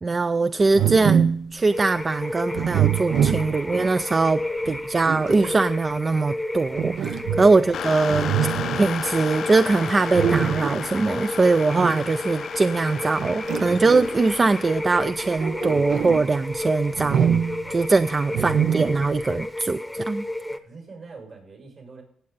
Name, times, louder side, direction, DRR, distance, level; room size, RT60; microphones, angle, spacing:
voice 1, 0.0-4.4 4.7-8.3 8.8-17.3 17.7-20.3, right 3 dB, 35° right, 0.4 m, -22 dB
sound 1, 0.7-1.5 2.5-3.9 4.6-5.6 6.8-7.7 8.1-8.9 10.1-10.9 11.8-12.1 13.2-14.3 15.1-16.3 16.9-17.7 18.3-19.2, right 8 dB, 75° right, 0.6 m, -24 dB
sound 2, 1.7-20.6, left 1 dB, 5° left, 0.8 m, -32 dB
voice 2, 7.0-7.4 20.6-22.0, right 4 dB, 60° right, 6.0 m, -43 dB
sound 3, 7.7-14.8, left 8 dB, 75° left, 0.5 m, -34 dB
16.5 x 7.5 x 4.0 m
cardioid pair, 80°, 0 cm